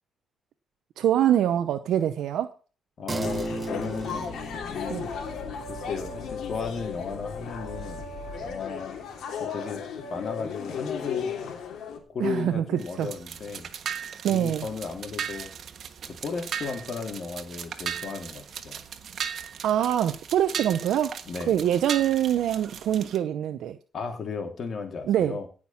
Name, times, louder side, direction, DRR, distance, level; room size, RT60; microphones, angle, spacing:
voice 1, 1.0-2.5 4.9-5.1 12.2-12.6 13.0-13.1 14.2-14.7 19.6-21.1 21.5-23.8 25.1-25.4, right 10 dB, 75° right, 0.7 m, -24 dB
voice 2, 3.0-4.3 4.7-5.1 5.7-8.0 8.4-9.0 9.4-9.8 10.1-11.3 12.1-13.7 14.3-15.5 16.1-18.8 21.3-21.6 23.9-25.5, left 5 dB, 50° left, 3.4 m, -35 dB
sound 1, 3.1-12.8, right 3 dB, 25° right, 1.2 m, -40 dB
sound 2, 3.2-12.0, left 6 dB, 70° left, 3.1 m, -35 dB
sound 3, 12.8-23.2, right 8 dB, 60° right, 1.4 m, -37 dB
17.0 x 6.1 x 5.9 m
cardioid pair, 90°, 0 cm